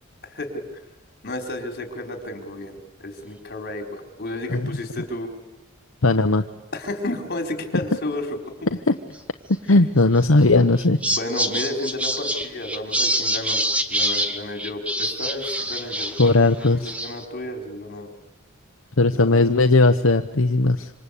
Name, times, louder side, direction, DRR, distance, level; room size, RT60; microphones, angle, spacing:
voice 1, 0.2-0.6 1.2-5.3 6.7-8.4 8.9-9.0 11.1-13.6 13.9-16.2 16.4-18.1 19.1-19.6, left 1 dB, 50° left, 4 dB, 4.5 m, -32 dB
voice 2, 6.0-6.4 8.9-9.0 9.7-11.0 16.2-16.9 19.0-20.9, left 2 dB, 75° left, 6 dB, 1.0 m, -17 dB
sound 1, 10.2-10.4 10.8-16.4 16.6-17.2, equal, 5° right, 1.6 m, -26 dB
26.5 x 26.0 x 8.5 m, 0.92 s
head